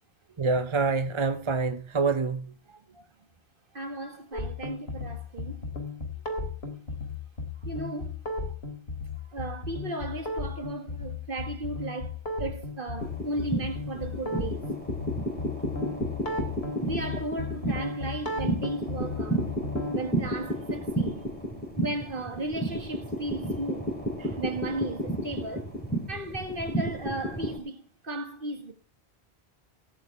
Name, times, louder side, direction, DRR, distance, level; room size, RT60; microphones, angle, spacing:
voice 1, 0.4-2.5 3.0-3.1 24.2-24.3, right 4 dB, 30° right, 0.7 m, -27 dB
voice 2, 3.7-5.7 7.7-8.2 9.3-14.7 16.8-19.5 19.9-21.3 21.8-23.9 24.4-25.7 26.1-28.7, right 2 dB, 55° right, 2.1 m, -35 dB
sound 1, 4.3-20.0, left 3 dB, 70° left, 3.7 m, -35 dB
sound 2, 13.0-27.6, right 1 dB, 10° left, 3.8 m, -32 dB
17.5 x 11.0 x 3.5 m
omnidirectional pair, 1.1 m